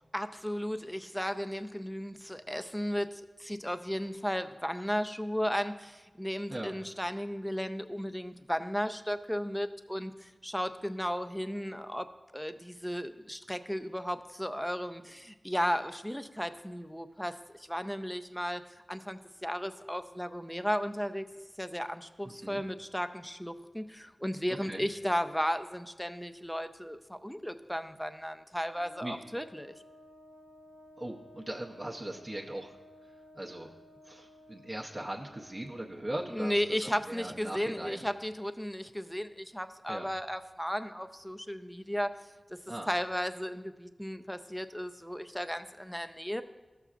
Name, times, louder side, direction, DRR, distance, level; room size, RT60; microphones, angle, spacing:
voice 1, 0.1-12.1 12.3-18.6 18.9-21.2 21.6-29.7 36.3-42.1 42.5-42.6 42.9-46.4, equal, 5° left, 9 dB, 0.4 m, -35 dB
voice 2, 22.2-22.6 24.5-24.8 29.0-29.2 31.0-33.7 34.0-38.1 39.9-40.1 42.7-42.9, right 1 dB, 35° right, -3 dB, 0.7 m, -40 dB
Wind instrument woodwind instrument, 28.7-36.5, left 1 dB, 70° right, 0.7 m, -56 dB
14.0 x 6.8 x 2.4 m, 1.2 s
wide cardioid pair, 75°, 0 cm